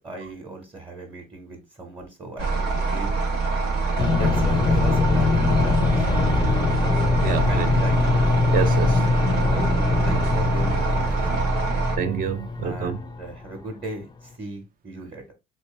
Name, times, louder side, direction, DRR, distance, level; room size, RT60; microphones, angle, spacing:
voice 1, 0.0-3.2 3.9-6.7 7.5-8.0 9.4-11.5 12.6-15.2, right 2 dB, 30° right, 1.2 m, -37 dB
sound 1, 2.4-12.0, right 4 dB, 80° right, 1.0 m, -25 dB
sound 2, 4.0-13.5, left 4 dB, 25° left, 0.4 m, -23 dB
voice 2, 7.2-7.8 8.5-9.0 12.0-13.0, right 7 dB, 55° right, 0.6 m, -27 dB
3.2 x 3.0 x 3.2 m
cardioid pair, 110°, 17 cm